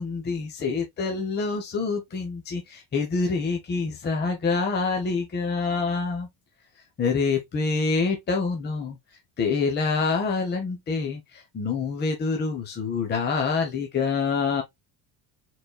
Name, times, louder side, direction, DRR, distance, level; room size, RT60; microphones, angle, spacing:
voice 1, 0.0-6.3 7.0-9.0 9.4-14.6, left 4 dB, 25° left, 0.9 m, -26 dB
4.5 x 4.0 x 2.2 m
cardioid pair, 145°, 43 cm